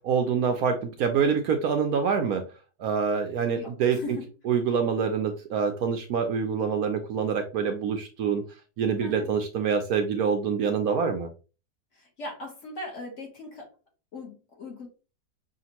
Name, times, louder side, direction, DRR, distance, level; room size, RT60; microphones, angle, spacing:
voice 1, 0.1-2.5 2.8-4.0 4.5-8.4 8.8-11.3, right 6 dB, 70° right, 5 dB, 0.9 m, -26 dB
voice 2, 3.4-4.3 9.0-9.3 11.9-13.7 14.1-14.9, left 2 dB, 45° left, 0 dB, 1.5 m, -39 dB
5.8 x 2.5 x 2.9 m, 0.33 s
omnidirectional pair, 1.9 m